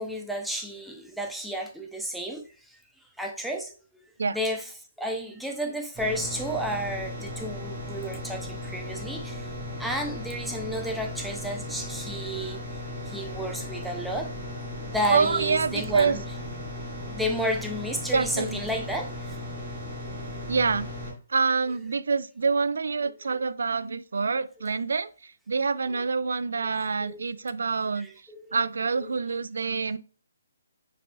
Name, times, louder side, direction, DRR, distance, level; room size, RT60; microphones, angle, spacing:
voice 1, 0.0-2.4 3.2-3.7 4.3-4.7 5.0-9.4 9.8-12.6 13.1-14.3 14.9-16.2 17.1-19.1 26.6-26.7 27.0-27.2 28.0-28.4, equal, ahead, 0.4 m, -32 dB
sound 1, 6.0-21.1, left 1 dB, 20° right, 1.3 m, -36 dB
voice 2, 15.1-16.2 18.1-18.6 20.5-20.9 21.3-28.1 28.5-30.0, right 4 dB, 75° right, 0.3 m, -26 dB
5.0 x 3.3 x 2.2 m
hypercardioid pair, 165°, 0 cm